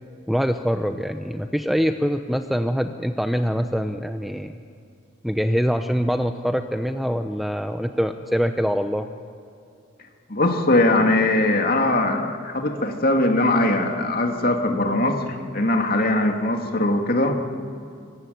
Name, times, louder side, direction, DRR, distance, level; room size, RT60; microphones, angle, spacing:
voice 1, 0.3-4.6 5.2-9.1, equal, ahead, 7 dB, 0.7 m, -24 dB
voice 2, 10.3-15.2 15.5-17.3, left 2 dB, 45° left, 3 dB, 2.5 m, -21 dB
25.0 x 24.0 x 9.5 m, 2.4 s
head